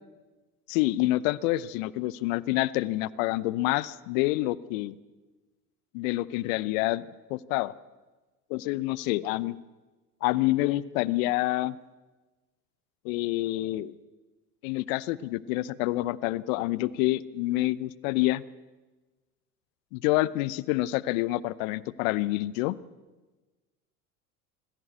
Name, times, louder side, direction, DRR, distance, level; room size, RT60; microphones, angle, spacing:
voice 1, 0.7-4.9 5.9-7.0 7.3-7.7 8.5-9.6 10.2-11.8 13.0-13.9 14.6-18.4 19.9-22.8, left 18 dB, 55° left, 20 dB, 0.8 m, -27 dB
21.0 x 16.0 x 8.3 m, 1.2 s
hypercardioid pair, 80°, 47 cm